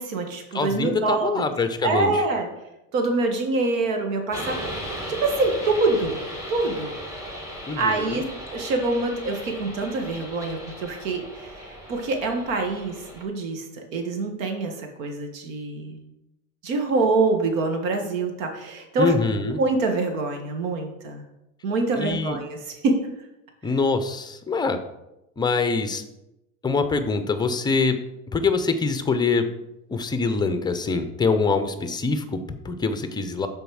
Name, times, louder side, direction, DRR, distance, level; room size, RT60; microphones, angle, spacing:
voice 1, 0.0-1.4 1.8-2.5 2.9-6.2 6.5-6.9 7.8-16.0 16.6-19.1 19.6-21.2 21.6-23.0, right 3 dB, 85° right, 4 dB, 1.6 m, -25 dB
voice 2, 0.5-2.2 7.7-8.2 19.0-19.6 22.0-22.4 23.6-24.8 25.4-26.0 26.6-28.0 28.3-29.5 29.9-33.5, left 4 dB, 10° left, 9 dB, 0.5 m, -24 dB
sound 1, 4.3-13.2, equal, 10° right, 1.7 m, -36 dB
6.7 x 4.2 x 6.3 m, 0.91 s
supercardioid pair, 130°, 39 cm